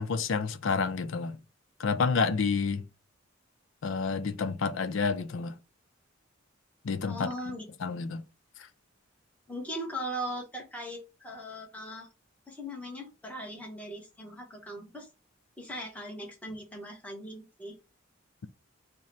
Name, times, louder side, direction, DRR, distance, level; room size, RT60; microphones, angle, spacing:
voice 1, 0.0-1.4 1.8-2.8 3.8-5.6 6.8-7.3 7.8-8.2, left 5 dB, 70° left, 0.5 m, -29 dB
voice 2, 7.1-7.7 9.5-12.1 12.5-15.1 15.6-17.8, equal, 5° left, 1.0 m, -39 dB
3.7 x 2.1 x 4.2 m
head